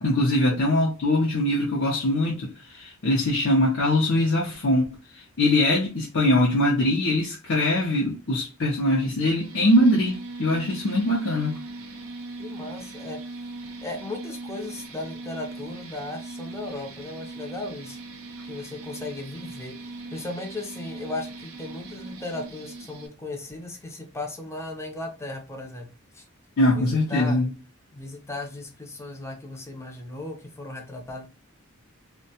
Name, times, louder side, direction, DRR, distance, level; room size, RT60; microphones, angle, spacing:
voice 1, 0.0-11.5 26.6-27.5, left 1 dB, 60° left, 0.6 m, -22 dB
LAser saw, 9.4-23.1, right 2 dB, 75° right, 0.5 m, -40 dB
voice 2, 12.4-13.4 13.8-18.0 18.4-25.9 26.1-26.2 26.6-27.4 27.9-31.3, left 2 dB, 15° left, 0.5 m, -36 dB
2.6 x 2.2 x 2.7 m
head